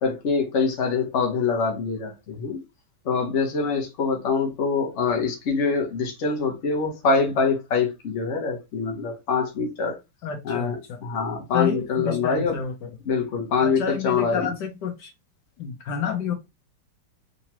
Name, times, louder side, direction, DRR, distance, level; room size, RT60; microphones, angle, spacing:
voice 1, 0.0-2.6 3.0-10.0 10.4-12.6 13.0-14.5, left 5 dB, 45° left, 1.2 m, -24 dB
voice 2, 10.2-11.0 11.5-12.9 13.6-15.1 15.6-16.3, left 7 dB, 75° left, 1.3 m, -29 dB
3.8 x 2.9 x 2.9 m
omnidirectional pair, 2.0 m